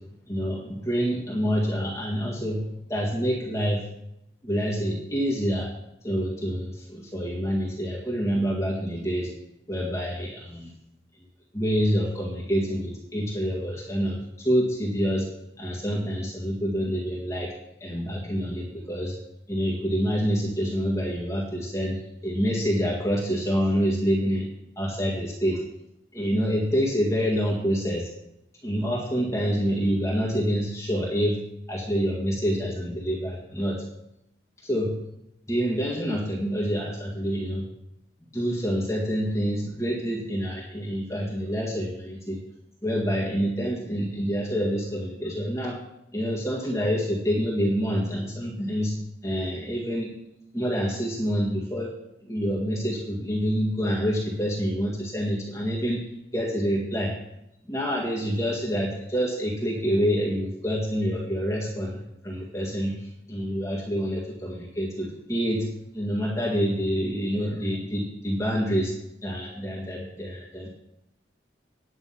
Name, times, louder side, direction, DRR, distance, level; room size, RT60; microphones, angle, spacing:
voice 1, 0.3-3.8 4.4-5.7 6.0-9.3 9.7-10.7 11.5-15.2 15.6-17.5 17.8-19.1 19.5-24.5 24.8-25.6 26.1-28.1 28.6-31.4 31.7-33.8 34.6-35.0 35.5-37.7 38.3-42.4 42.8-45.8 46.1-50.1 50.5-51.9 52.2-56.0 56.3-57.1 57.7-65.7 65.9-68.9 69.2-70.7, equal, 15° left, -4 dB, 1.8 m, -27 dB
9.7 x 9.3 x 5.8 m, 0.82 s
head